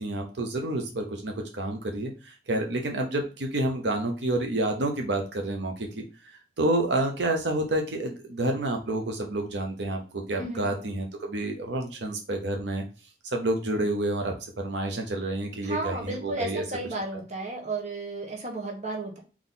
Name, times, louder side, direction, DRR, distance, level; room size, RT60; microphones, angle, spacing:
voice 1, 0.0-6.0 6.6-12.8 13.3-16.6, right 1 dB, 90° right, 3 dB, 0.8 m, -29 dB
voice 2, 15.6-19.2, right 2 dB, 40° right, 0 dB, 1.2 m, -33 dB
3.9 x 3.0 x 3.7 m, 0.34 s
head